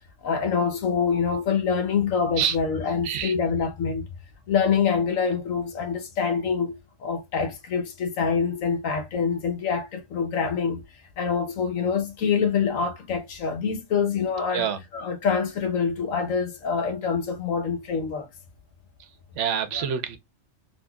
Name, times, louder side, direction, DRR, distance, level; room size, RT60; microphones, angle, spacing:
voice 1, 0.2-4.1 4.5-6.7 7.0-10.8 11.2-18.3 19.7-19.8, left 6 dB, 85° left, 1.3 m, -25 dB
voice 2, 19.4-20.2, right 8 dB, 70° right, 1.0 m, -26 dB
3.8 x 2.8 x 2.3 m
omnidirectional pair, 1.4 m